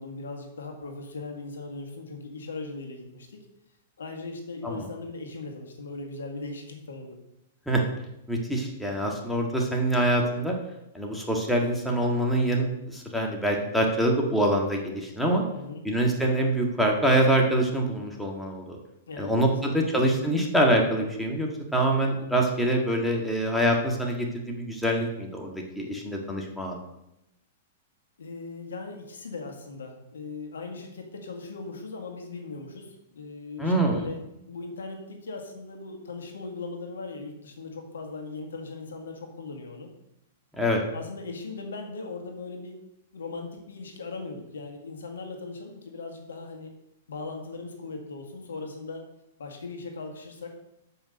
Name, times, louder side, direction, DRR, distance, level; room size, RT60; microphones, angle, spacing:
voice 1, 0.0-3.4 4.0-7.2 15.5-15.8 19.1-19.9 28.2-34.2 34.5-39.9 40.9-42.8 43.1-46.7 47.1-49.1 49.4-50.5, left 3 dB, 80° left, 3 dB, 1.8 m, -39 dB
voice 2, 8.3-10.6 10.9-15.4 15.8-18.8 19.2-26.8 33.6-34.1 40.6-40.8, right 1 dB, ahead, -1 dB, 1.7 m, -25 dB
7.2 x 5.5 x 6.5 m, 0.88 s
hypercardioid pair, 115°, 0 cm